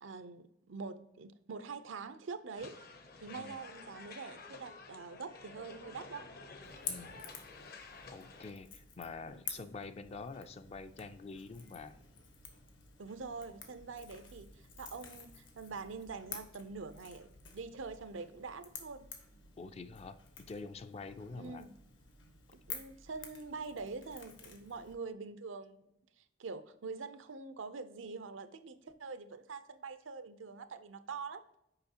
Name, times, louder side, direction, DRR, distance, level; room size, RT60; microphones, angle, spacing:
voice 1, 0.0-2.8 3.2-6.3 13.0-19.1 21.4-21.7 22.7-25.8 26.2-31.4, right 4 dB, 80° right, 11 dB, 0.6 m, -45 dB
sound 1, 2.6-8.5, left 3 dB, 50° left, 0.7 m, -51 dB
Crackle / Crack, 6.6-24.9, left 6 dB, 70° left, 1.2 m, -50 dB
voice 2, 6.9-7.2 8.1-12.0 19.6-21.6, left 4 dB, 30° left, 11 dB, 0.3 m, -46 dB
6.8 x 4.8 x 2.8 m, 0.81 s
head